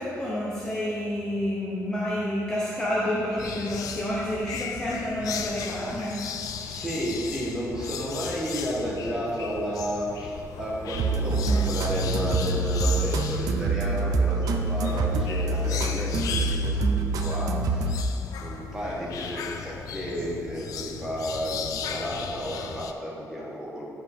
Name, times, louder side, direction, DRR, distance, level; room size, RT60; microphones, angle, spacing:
voice 1, 0.0-6.3, left 1 dB, 10° left, -6 dB, 0.7 m, -29 dB
sound 1, 3.4-22.9, left 7 dB, 75° left, 0.4 m, -37 dB
voice 2, 6.5-23.8, equal, 10° right, -5 dB, 1.3 m, -32 dB
sound 2, 9.5-13.3, right 1 dB, 30° right, 0.7 m, -42 dB
sound 3, 10.9-18.0, right 3 dB, 90° right, 0.5 m, -26 dB
9.3 x 4.7 x 3.6 m, 2.5 s
cardioid pair, 165°, 6 cm